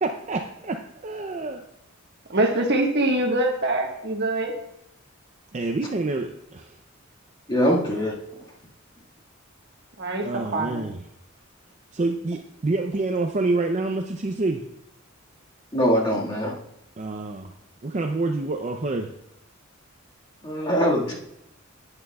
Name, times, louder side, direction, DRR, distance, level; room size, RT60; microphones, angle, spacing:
voice 1, 0.0-1.6 5.5-6.8 10.2-11.0 11.9-14.6 17.0-17.5 17.8-19.1, right 3 dB, 35° right, 4 dB, 0.5 m, -27 dB
voice 2, 2.3-4.5 10.0-10.8, right 2 dB, 55° right, 2 dB, 1.3 m, -24 dB
voice 3, 7.5-8.1 15.7-16.5 20.4-21.1, equal, 25° left, -4 dB, 1.8 m, -22 dB
11.0 x 8.8 x 2.3 m, 0.85 s
head